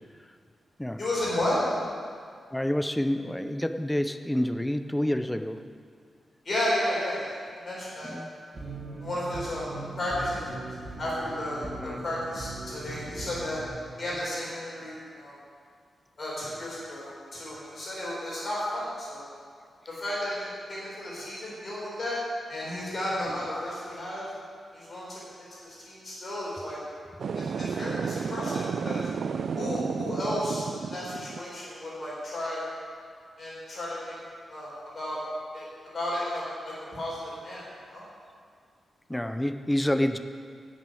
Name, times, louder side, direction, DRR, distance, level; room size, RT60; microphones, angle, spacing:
voice 1, 1.0-1.6 6.4-7.4 7.6-8.1 9.0-9.7 9.9-10.5 11.0-13.6 14.0-15.3 16.2-19.3 19.9-22.2 22.5-24.3 24.7-25.2 25.6-26.8 27.3-29.1 29.6-32.6 33.4-34.2 34.5-35.2 35.5-35.7 35.9-38.0, left 1 dB, 35° left, -7 dB, 4.2 m, -33 dB
voice 2, 2.5-5.6 8.0-8.3 11.8-12.0 39.1-40.2, left 1 dB, 5° left, 8 dB, 0.5 m, -28 dB
sound 1, 8.5-13.6, right 2 dB, 30° right, 1.7 m, -40 dB
sound 2, 27.2-31.4, right 6 dB, 55° right, 0.3 m, -32 dB
13.0 x 6.3 x 9.1 m, 2.1 s
wide cardioid pair, 175°, 0 cm